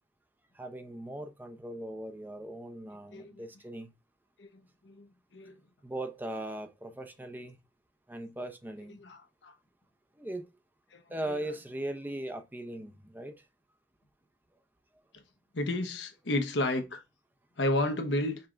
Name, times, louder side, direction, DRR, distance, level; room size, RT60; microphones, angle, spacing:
voice 1, 0.5-3.9 5.8-7.6 8.1-9.0 10.2-10.5 11.1-13.4, right 1 dB, 10° right, 0.5 m, -39 dB
voice 2, 4.4-5.5 8.9-9.5 10.9-11.0 15.5-17.0 17.6-18.4, left 1 dB, 80° left, 1.0 m, -32 dB
5.4 x 3.3 x 2.5 m
head